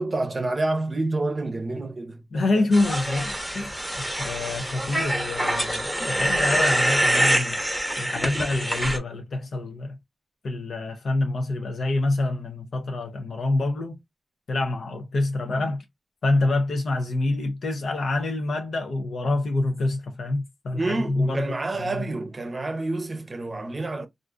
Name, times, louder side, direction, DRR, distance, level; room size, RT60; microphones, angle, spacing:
voice 1, 0.0-2.5 20.7-24.1, right 2 dB, 30° right, 0.6 m, -28 dB
voice 2, 2.3-7.6 8.0-10.0 10.4-14.0 14.5-15.8 16.2-21.5 21.8-22.0, left 2 dB, 80° left, 0.6 m, -26 dB
sound 1, 2.7-9.0, right 1 dB, 5° left, 0.8 m, -25 dB
3.7 x 2.4 x 2.3 m
wide cardioid pair, 165°, 0 cm